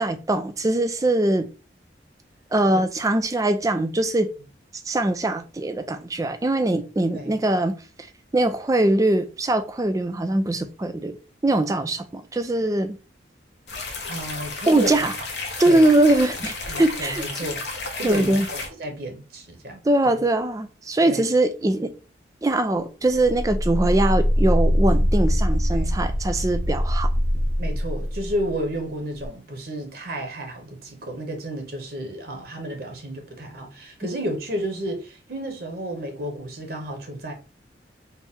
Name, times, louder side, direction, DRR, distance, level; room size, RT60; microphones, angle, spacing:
voice 1, 0.0-1.5 2.5-4.3 4.9-7.7 8.3-11.1 11.4-13.0 14.7-15.1 15.6-17.2 18.0-18.5 19.8-21.9 22.4-27.1, right 2 dB, 20° right, 0.3 m, -22 dB
sound 1, 13.7-18.7, left 3 dB, 65° left, 0.8 m, -33 dB
voice 2, 14.1-15.0 15.7-15.9 16.7-20.2 21.0-21.2 25.7-25.9 27.6-37.3, equal, 55° right, 0.8 m, -32 dB
sound 2, 23.1-28.7 29.1-29.3, equal, 20° left, 0.7 m, -22 dB
4.3 x 2.0 x 3.5 m
head